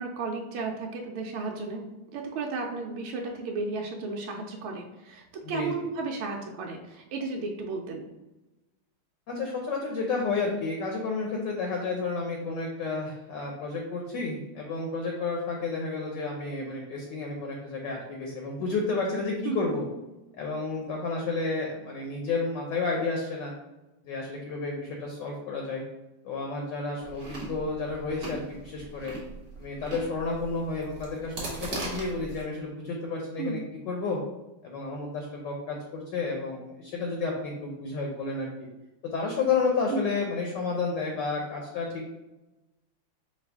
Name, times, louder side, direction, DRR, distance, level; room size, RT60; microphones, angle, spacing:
voice 1, 0.0-8.1 19.4-19.8 33.4-33.7 39.9-40.1, right 3 dB, 80° right, 1 dB, 1.4 m, -34 dB
voice 2, 9.3-19.9 20.4-23.5 24.0-25.8 26.2-29.1 29.6-33.6 33.9-34.2 34.6-38.7 39.1-42.1, left 4 dB, 70° left, 0 dB, 1.2 m, -31 dB
Chewing mastication, 27.0-32.4, right 2 dB, 45° right, 1.4 m, -39 dB
5.3 x 2.4 x 3.4 m, 1.0 s
omnidirectional pair, 2.4 m